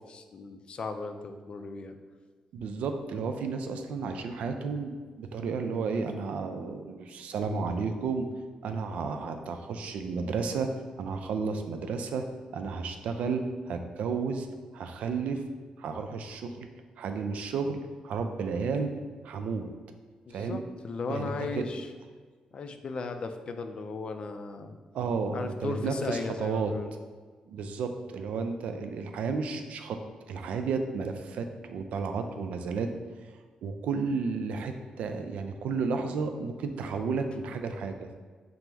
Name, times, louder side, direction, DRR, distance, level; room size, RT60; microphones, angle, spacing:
voice 1, 0.1-2.0 10.6-10.7 20.3-21.9 22.5-24.8 25.3-26.9, left 4 dB, 45° left, 7 dB, 0.3 m, -36 dB
voice 2, 2.5-8.3 8.6-10.7 11.0-12.3 12.5-14.5 14.7-15.4 15.8-16.7 17.0-18.9 19.2-19.7 20.3-20.6 21.1-21.7 24.9-26.7 27.5-30.0 30.3-32.9 33.6-38.1, right 5 dB, 85° right, 6 dB, 0.3 m, -32 dB
5.9 x 2.0 x 3.4 m, 1.5 s
cardioid pair, 115°, 2 cm